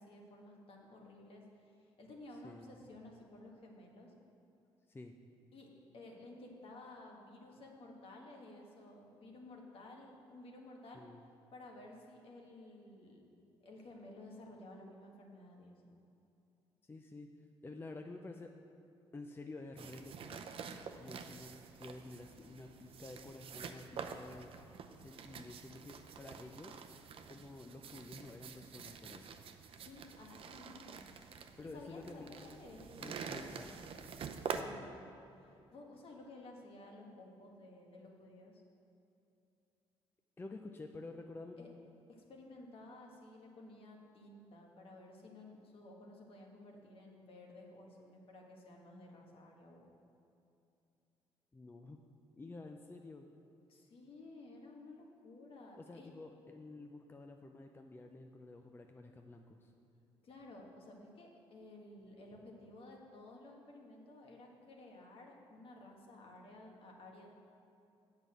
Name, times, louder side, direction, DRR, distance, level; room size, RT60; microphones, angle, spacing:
voice 1, 0.0-4.1 5.5-5.7 5.9-11.1 11.5-13.2 13.6-16.0 29.7-31.1 31.7-33.6 34.3-38.6 41.6-41.7 42.1-49.9 53.7-56.1 60.2-67.3, left 2 dB, 60° left, 0 dB, 1.7 m, -54 dB
voice 2, 2.4-2.7 4.9-5.1 10.9-11.2 16.8-17.3 17.6-18.5 19.1-20.4 21.0-21.5 21.8-24.5 25.0-26.8 27.3-29.2 31.6-32.6 33.0-33.7 34.5-34.8 40.4-41.8 51.5-52.0 52.3-53.3 55.8-59.7, left 2 dB, 20° left, 4 dB, 0.5 m, -50 dB
sound 1, 19.8-34.6, right 6 dB, 60° right, 0.6 m, -47 dB
8.0 x 5.3 x 7.6 m, 2.7 s
cardioid pair, 80°, 11 cm